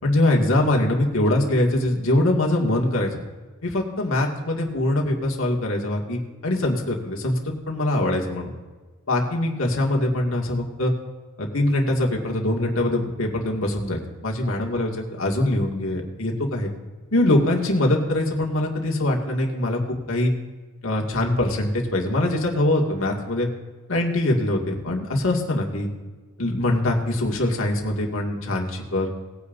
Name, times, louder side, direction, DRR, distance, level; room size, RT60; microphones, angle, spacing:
voice 1, 0.0-3.2 3.6-7.4 7.7-8.5 9.1-10.9 11.4-16.7 17.1-20.3 20.8-23.5 23.9-25.9 26.4-29.1, left 1 dB, 70° left, 0 dB, 2.2 m, -23 dB
19.5 x 9.8 x 2.7 m, 1.3 s
head